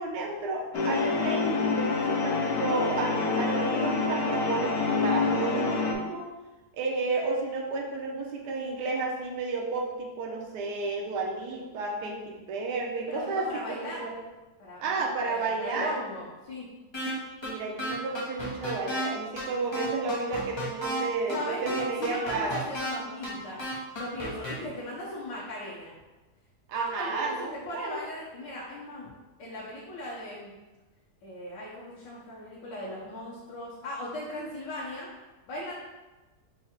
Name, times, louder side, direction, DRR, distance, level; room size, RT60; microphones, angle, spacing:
voice 1, 0.0-6.3 6.7-14.1 14.8-16.0 17.4-22.6 26.7-28.0, right 3 dB, 80° right, 0 dB, 1.3 m, -32 dB
sound 1, 0.7-5.9, left 4 dB, 70° left, 0.8 m, -27 dB
voice 2, 13.1-14.1 14.6-14.9 15.2-16.7 21.3-23.7 23.9-25.9 26.7-29.1 29.4-30.5 31.2-35.1 35.5-35.7, left 1 dB, 85° left, -8 dB, 1.6 m, -38 dB
sound 2, 16.9-17.1 17.4-17.5 17.8-19.1 19.4-19.5 19.7-21.0 21.3-21.4 21.7-22.9 23.2-23.3 23.6-24.5, equal, 20° left, 0.8 m, -33 dB
4.6 x 2.4 x 4.3 m, 1.1 s
omnidirectional pair, 1.8 m